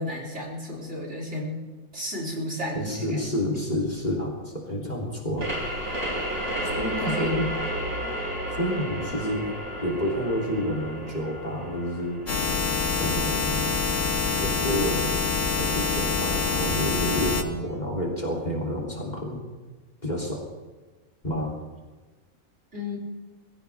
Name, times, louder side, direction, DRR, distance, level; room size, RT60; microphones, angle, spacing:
voice 1, 0.0-1.6 1.9-3.2 7.0-7.3 7.9-8.1 22.7-23.0, left 1 dB, 55° right, -4 dB, 4.2 m, -33 dB
voice 2, 2.7-5.5 6.6-7.5 8.5-9.5 9.8-12.2 13.0-13.8 14.4-15.2 15.5-19.4 20.0-20.5 21.2-21.5, equal, 30° left, -1 dB, 3.3 m, -29 dB
sound 1, 5.4-14.7, equal, 75° right, 4.8 m, -33 dB
sound 2, 12.3-17.4, left 4 dB, 65° left, 2.0 m, -26 dB
22.0 x 16.0 x 3.6 m, 1.3 s
omnidirectional pair, 1.4 m